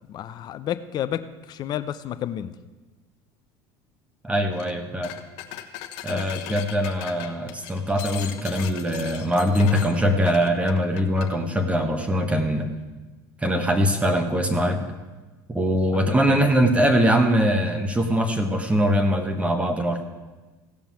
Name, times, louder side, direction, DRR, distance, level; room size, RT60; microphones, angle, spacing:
voice 1, 0.1-2.5 6.1-6.2 15.9-16.5, left 10 dB, 45° left, 12 dB, 0.7 m, -31 dB
voice 2, 4.2-5.1 6.0-12.7 13.4-14.9 15.5-20.0, equal, 10° right, 6 dB, 1.4 m, -22 dB
sound 1, 4.5-4.7 5.0-11.3, left 12 dB, 70° left, 1.0 m, -38 dB
16.0 x 5.4 x 7.5 m, 1.2 s
supercardioid pair, 100°, 10 cm